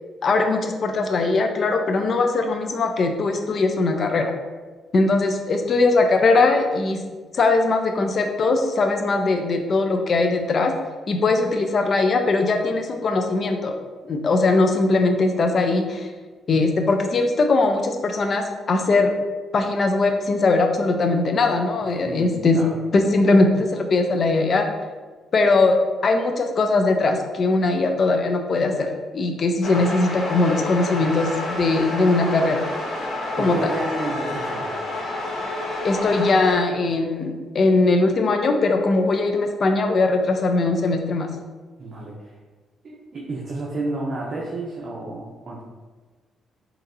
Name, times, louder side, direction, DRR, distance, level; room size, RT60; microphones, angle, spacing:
voice 1, 0.2-4.3 4.9-7.0 7.3-10.7 11.1-13.7 14.1-16.1 16.5-19.1 19.5-22.6 22.9-24.7 25.3-25.8 26.0-28.9 29.1-32.7 33.4-33.8 35.8-41.3, left 3 dB, 50° left, 5 dB, 0.4 m, -20 dB
voice 2, 22.0-22.8 33.4-34.8 41.8-42.3 42.8-45.6, right 2 dB, 45° right, -5 dB, 0.6 m, -31 dB
sound 1, 29.6-36.5, left 2 dB, 65° left, 1.2 m, -29 dB
3.9 x 2.7 x 2.6 m, 1.4 s
cardioid pair, 90°, 0 cm